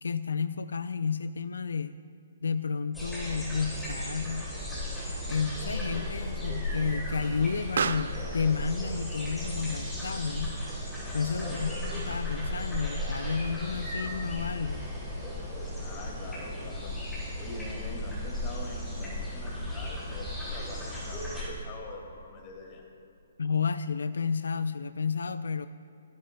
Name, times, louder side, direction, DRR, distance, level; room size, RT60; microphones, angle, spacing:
voice 1, 0.0-1.9 2.4-4.5 5.3-10.6 11.1-14.9 23.4-25.7, left 5 dB, 90° left, 12 dB, 0.4 m, -31 dB
sound 1, 2.9-21.5, left 1 dB, ahead, 3.5 m, -35 dB
Explosion, 3.6-12.6, right 6 dB, 65° right, 0.5 m, -40 dB
voice 2, 11.2-11.6 11.9-12.1 15.8-17.0 17.4-22.9, left 3 dB, 25° left, 0 dB, 2.1 m, -44 dB
29.0 x 10.5 x 2.2 m, 2.7 s
hypercardioid pair, 160°, 0 cm